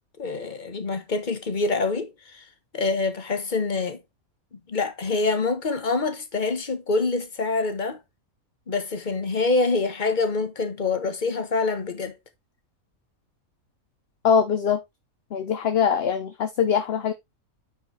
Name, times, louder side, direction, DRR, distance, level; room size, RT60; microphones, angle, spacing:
voice 1, 0.2-2.4 2.7-4.0 4.5-8.0 8.7-12.2, left 3 dB, 35° left, 1.4 m, -26 dB
voice 2, 14.2-14.8 15.3-17.1, left 7 dB, 50° left, 0.9 m, -22 dB
9.3 x 5.7 x 3.2 m
omnidirectional pair, 1.5 m